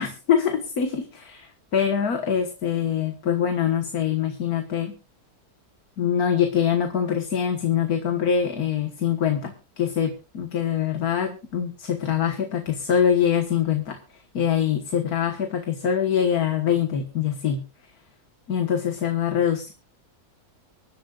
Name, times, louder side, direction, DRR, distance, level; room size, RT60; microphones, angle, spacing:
voice 1, 0.0-5.0 6.0-14.0 14.3-17.6 18.5-19.7, left 8 dB, 75° left, 5 dB, 2.0 m, -24 dB
25.0 x 11.5 x 2.5 m, 0.31 s
omnidirectional pair, 1.6 m